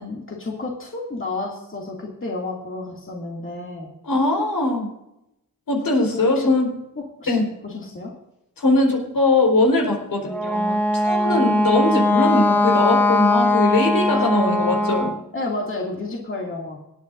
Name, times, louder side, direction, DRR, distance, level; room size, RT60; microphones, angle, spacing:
voice 1, 0.0-3.9 6.1-6.5 7.0-8.2 11.3-12.0 14.1-14.7 15.3-16.8, left 2 dB, 35° left, -1 dB, 2.4 m, -31 dB
voice 2, 4.0-4.9 5.7-6.7 7.3-7.4 8.6-15.1, left 2 dB, 75° left, -1 dB, 4.4 m, -21 dB
Wind instrument woodwind instrument, 10.3-15.2, left 1 dB, 5° left, 1.3 m, -20 dB
25.5 x 9.2 x 2.6 m, 0.86 s
cardioid pair, 75°, 35 cm